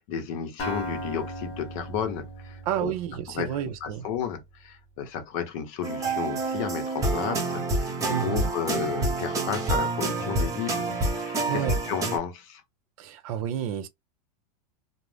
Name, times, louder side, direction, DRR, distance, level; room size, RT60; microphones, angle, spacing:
voice 1, 0.0-2.9 3.3-10.9 11.2-12.6, left 8 dB, 55° left, 0.8 m, -33 dB
Acoustic guitar, 0.6-4.4, equal, 25° left, 1.0 m, -37 dB
voice 2, 2.7-4.1 8.1-8.5 11.5-11.8 13.0-13.9, right 10 dB, 60° right, 0.6 m, -30 dB
sound 1, 5.8-12.2, right 2 dB, 15° right, 0.9 m, -28 dB
2.5 x 2.1 x 3.2 m
supercardioid pair, 145°, 21 cm